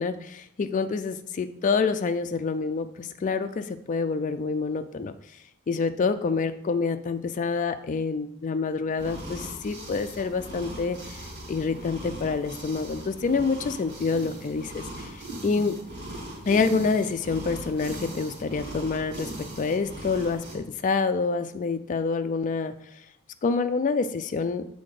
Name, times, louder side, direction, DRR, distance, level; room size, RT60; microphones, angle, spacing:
voice 1, 0.0-5.1 5.7-15.8 16.5-22.7 23.4-24.6, left 4 dB, 35° left, 8 dB, 0.3 m, -27 dB
sound 1, 9.0-20.6, right 1 dB, 55° right, 2.3 m, -39 dB
7.5 x 4.2 x 4.8 m, 0.74 s
head